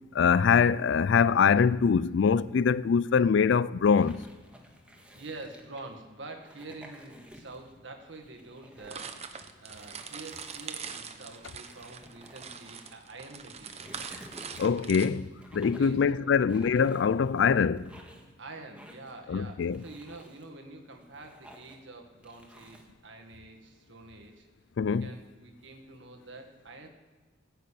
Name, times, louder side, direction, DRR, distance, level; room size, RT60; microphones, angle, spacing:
voice 1, 0.1-4.2 14.6-17.9 19.3-19.8 24.8-25.1, left 6 dB, 65° left, 0.4 m, -24 dB
sound 1, 3.8-5.9 6.4-7.7 8.1-9.1 9.6-12.9 13.4-14.9 15.4-16.0 16.5-17.4 17.8-18.3 18.7-19.2 19.6-20.5 20.9-21.9 22.2-22.9, equal, 5° right, 1.7 m, -53 dB
voice 2, 5.1-14.1 15.8-16.4 18.4-24.5 25.0-26.9, right 2 dB, 65° right, 1.8 m, -47 dB
sound 2, 8.9-15.1, right 6 dB, 35° right, 0.9 m, -42 dB
15.0 x 6.7 x 8.5 m
head